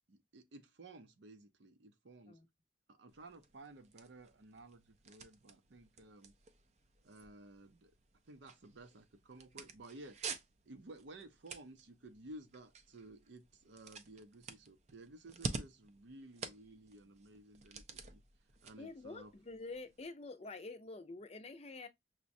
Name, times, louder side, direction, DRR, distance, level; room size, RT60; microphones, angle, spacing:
voice 1, 0.1-2.4 2.9-6.3 7.0-7.9 8.3-10.2 10.7-18.2 18.6-19.3, right 2 dB, 80° right, 0.6 m, -55 dB
sound 1, 3.1-20.1, right 4 dB, 40° right, 0.4 m, -50 dB
voice 2, 18.8-21.9, left 3 dB, 35° left, 0.5 m, -47 dB
5.9 x 2.1 x 2.6 m
head